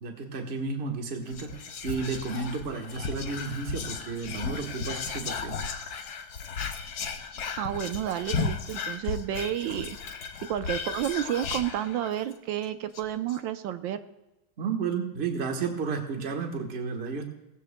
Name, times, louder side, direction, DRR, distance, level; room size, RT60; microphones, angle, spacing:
voice 1, 0.0-6.0 14.6-17.3, right 5 dB, 35° right, 3 dB, 1.3 m, -32 dB
Whispering, 1.3-12.3 12.6-12.7 12.9-13.4, left 5 dB, 60° left, 1.3 m, -35 dB
voice 2, 7.6-10.0 10.5-14.0, right 11 dB, 75° right, 10 dB, 1.4 m, -30 dB
18.0 x 15.0 x 2.2 m, 0.96 s
omnidirectional pair, 2.2 m